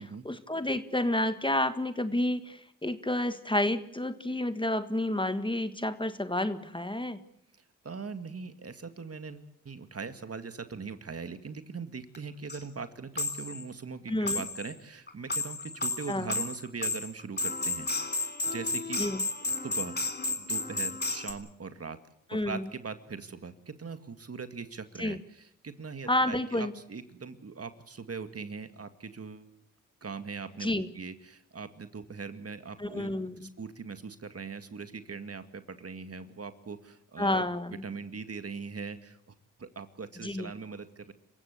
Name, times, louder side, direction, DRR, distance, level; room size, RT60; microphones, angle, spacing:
voice 1, 0.0-7.2 14.1-14.4 16.1-16.3 19.0-19.2 22.3-22.6 25.0-25.2 26.1-26.7 30.6-30.9 32.8-33.5 37.2-37.8 40.2-40.5, left 1 dB, 15° left, 11 dB, 1.6 m, -30 dB
voice 2, 7.8-17.9 18.2-19.0 19.6-20.0 20.4-22.0 22.3-29.5 30.0-33.1 33.4-37.5 37.8-41.1, right 5 dB, 45° right, 10 dB, 2.0 m, -41 dB
sound 1, 12.1-12.2 12.5-12.6 13.2-13.6 14.3-14.7 15.1-21.3, left 3 dB, 30° left, 3.6 m, -32 dB
27.0 x 15.5 x 8.2 m, 0.74 s
cardioid pair, 50°, 32 cm